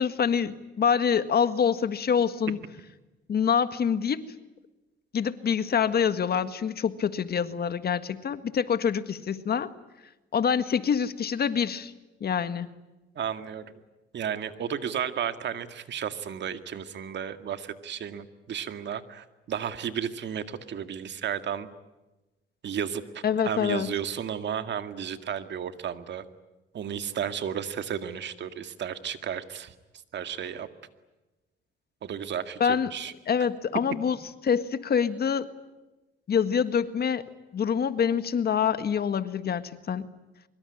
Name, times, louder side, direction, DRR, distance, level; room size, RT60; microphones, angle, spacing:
voice 1, 0.0-2.6 3.3-4.2 5.1-9.7 10.3-11.9 12.2-12.7 23.2-23.9 32.6-32.9 33.3-34.2 34.4-35.5 36.3-40.1, left 7 dB, 50° left, 11 dB, 1.7 m, -26 dB
voice 2, 13.2-13.7 14.1-21.7 22.6-26.2 26.7-29.7 30.1-30.7 32.0-33.1, right 8 dB, 65° right, 9 dB, 2.0 m, -33 dB
24.5 x 23.5 x 9.9 m, 1.1 s
cardioid pair, 90°, 20 cm